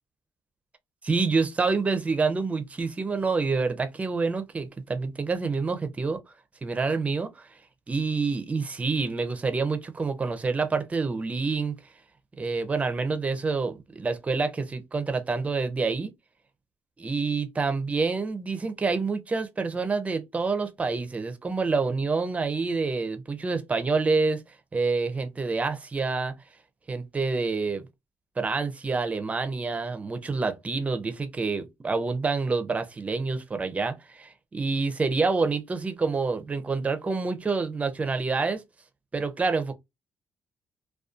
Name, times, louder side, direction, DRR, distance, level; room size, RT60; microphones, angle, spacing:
voice 1, 1.0-6.2 6.6-7.5 7.9-11.7 12.4-16.1 17.0-24.4 24.7-26.3 26.9-27.9 28.4-38.6 39.1-39.7, right 4 dB, 20° right, 0.5 m, -27 dB
2.5 x 2.2 x 2.4 m
cardioid pair, 110°, 6 cm